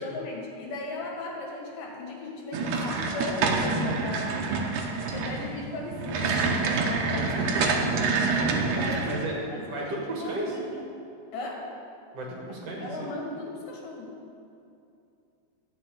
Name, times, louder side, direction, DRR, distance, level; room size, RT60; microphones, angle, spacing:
voice 1, 0.0-4.5 4.9-7.9 8.7-9.9 10.2-10.8 11.3-11.7 12.8-14.1, left 2 dB, 85° left, -1 dB, 3.3 m, -37 dB
sound 1, 2.5-9.2, right 4 dB, 75° right, 2.4 m, -27 dB
voice 2, 7.1-8.0 8.6-10.6 12.1-13.1, right 1 dB, 55° right, -2 dB, 2.3 m, -34 dB
12.5 x 5.5 x 8.5 m, 2.6 s
omnidirectional pair, 3.7 m